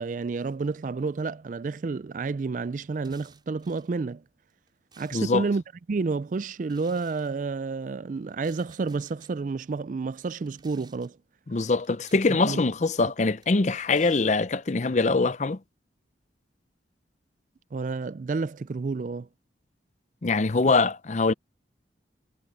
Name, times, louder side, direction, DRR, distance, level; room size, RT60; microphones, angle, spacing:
voice 1, 0.0-4.2 5.0-5.6 5.9-11.2 12.4-12.6 17.7-19.3, right 4 dB, 45° right, 0.4 m, -30 dB
sound 1, 2.9-3.9 4.5-5.5 6.6-7.3 8.3-9.3 10.4-11.1 11.8-12.6 13.4-14.4, right 5 dB, 25° right, 6.3 m, -57 dB
voice 2, 5.1-5.5 11.5-15.6 20.2-21.3, left 3 dB, 40° left, 0.6 m, -23 dB
head